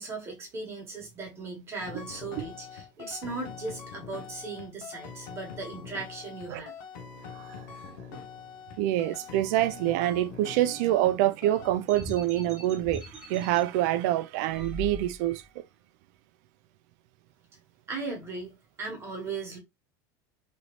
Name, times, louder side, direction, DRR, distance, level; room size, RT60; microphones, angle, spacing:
voice 1, 0.0-6.7 17.9-19.6, right 3 dB, 25° right, 1.3 m, -38 dB
sound 1, 1.8-11.2 11.4-11.7, left 7 dB, 85° left, 0.7 m, -44 dB
voice 2, 7.3-7.7 8.1-8.2 8.8-15.6, right 14 dB, 65° right, 0.4 m, -26 dB
sound 2, 11.9-13.6 14.5-15.4, equal, 5° right, 1.1 m, -40 dB
3.0 x 2.7 x 3.0 m
supercardioid pair, 150°, 10 cm